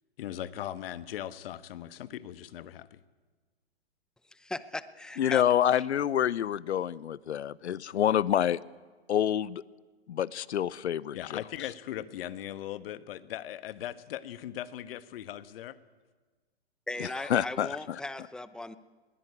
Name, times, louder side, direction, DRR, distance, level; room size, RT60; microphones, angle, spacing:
voice 1, 0.2-3.0 11.1-15.8, left 12 dB, 60° left, 13 dB, 1.3 m, -39 dB
voice 2, 4.3-5.4 16.9-18.7, left 2 dB, ahead, 13 dB, 0.7 m, -38 dB
voice 3, 5.2-8.6 9.1-9.6 10.1-11.4 17.0-17.8, left 10 dB, 85° left, 21 dB, 0.8 m, -27 dB
21.0 x 17.5 x 9.7 m, 1.4 s
hypercardioid pair, 130°, 33 cm